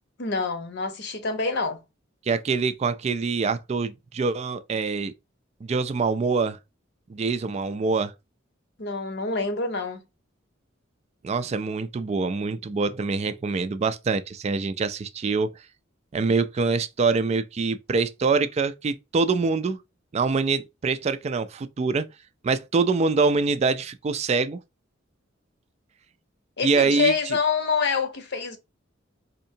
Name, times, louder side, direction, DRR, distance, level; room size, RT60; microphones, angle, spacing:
voice 1, 0.2-1.8 8.8-10.0 26.6-28.6, left 4 dB, 60° left, 0.8 m, -26 dB
voice 2, 2.3-5.1 5.6-6.6 7.1-8.1 11.2-15.5 16.1-19.8 20.1-22.1 22.4-24.6 26.6-27.1, right 4 dB, 35° right, 0.3 m, -25 dB
4.3 x 2.7 x 2.7 m
head